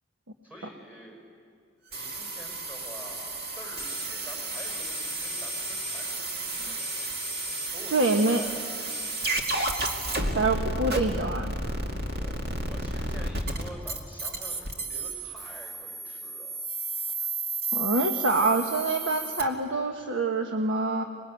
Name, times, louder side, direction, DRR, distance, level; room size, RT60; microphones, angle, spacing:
voice 1, 0.4-1.2 1.9-6.8 7.7-8.7 12.2-16.6, equal, 10° right, -1 dB, 5.3 m, -47 dB
sound 1, 1.9-19.4, right 2 dB, 55° right, 2.3 m, -32 dB
voice 2, 7.9-8.4 10.3-11.5 17.7-21.0, right 2 dB, 90° right, 3 dB, 1.4 m, -25 dB
25.0 x 21.5 x 9.3 m, 2.3 s
head